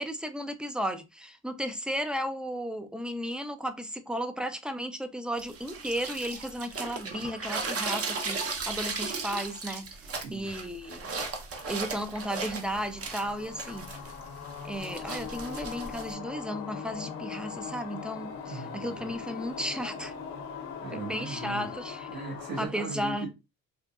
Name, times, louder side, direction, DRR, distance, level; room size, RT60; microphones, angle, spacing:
voice 1, 0.0-11.1 11.7-13.9 14.6-20.1 20.9-22.1 22.6-23.3, equal, 5° right, 0.4 m, -34 dB
sound 1, 5.4-16.1, right 4 dB, 40° right, 0.8 m, -36 dB
voice 2, 10.0-10.5 18.5-19.1 20.8-21.7 22.1-23.3, right 4 dB, 75° right, 1.6 m, -39 dB
sound 2, 12.7-22.7, left 7 dB, 80° left, 0.8 m, -40 dB
3.8 x 2.2 x 2.3 m
supercardioid pair, 70°, 36 cm